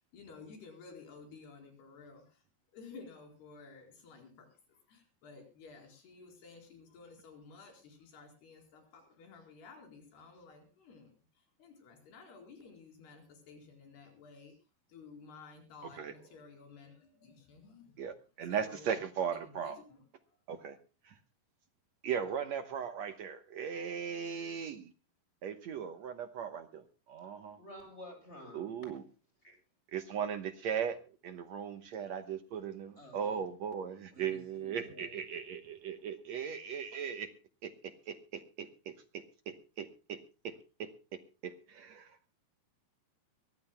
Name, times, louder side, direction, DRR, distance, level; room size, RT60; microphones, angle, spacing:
voice 1, 0.1-2.4 2.7-11.1 11.6-14.5 14.9-17.9 18.5-19.0 19.3-20.0, left 4 dB, 85° left, 4 dB, 6.3 m, -54 dB
voice 2, 18.0-19.8 20.5-20.8 21.0-21.1 22.0-24.9 25.4-27.6 28.5-29.0 29.9-31.0 31.2-37.3 37.6-37.7 38.1-38.7 39.1-40.2 40.4-40.9 41.4-42.2, right 7 dB, 70° right, 9 dB, 1.7 m, -38 dB
voice 3, 27.6-28.6 29.4-29.5 33.0-33.4 34.1-35.2, left 1 dB, 15° left, 4 dB, 8.2 m, -51 dB
23.5 x 18.0 x 2.2 m, 0.33 s
omnidirectional pair, 4.5 m